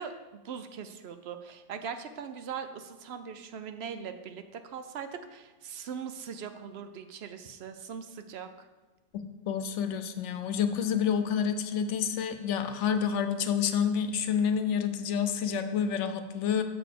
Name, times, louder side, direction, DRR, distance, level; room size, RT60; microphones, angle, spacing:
voice 1, 0.0-8.7, right 7 dB, 65° right, 9 dB, 0.8 m, -40 dB
voice 2, 9.5-16.6, left 7 dB, 85° left, 9 dB, 1.0 m, -28 dB
6.8 x 4.0 x 6.5 m, 1.2 s
omnidirectional pair, 1.2 m